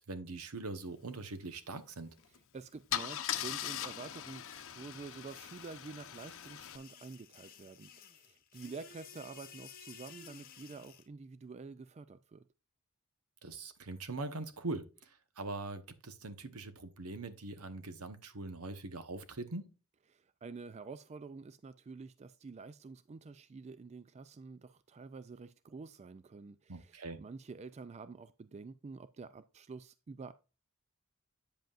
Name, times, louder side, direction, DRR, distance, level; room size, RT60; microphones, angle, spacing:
voice 1, 0.0-2.1 13.4-19.7 26.7-27.2, right 2 dB, 70° right, 1.1 m, -42 dB
Car / Engine starting / Idling, 2.2-2.4 2.9-6.8, left 10 dB, 60° left, 0.8 m, -40 dB
voice 2, 2.3-12.5 20.1-30.3, right 4 dB, 30° right, 0.3 m, -48 dB
sound 1, 5.3-11.1, left 7 dB, 40° left, 1.1 m, -55 dB
9.0 x 7.7 x 2.5 m
head